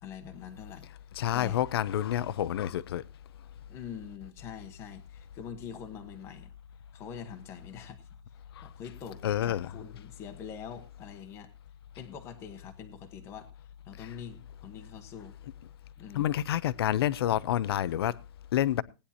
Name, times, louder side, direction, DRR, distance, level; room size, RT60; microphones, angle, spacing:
voice 1, 0.0-0.9 1.3-1.6 3.7-6.5 6.9-8.1 8.6-11.5 12.0-15.3 16.0-16.3, left 8 dB, 15° left, 1.1 m, -44 dB
voice 2, 1.2-3.0 8.6-8.7 9.2-9.7 14.0-14.1 16.1-18.2 18.5-18.8, left 11 dB, 55° left, 0.6 m, -28 dB
18.5 x 9.9 x 2.8 m
supercardioid pair, 175°, 15 cm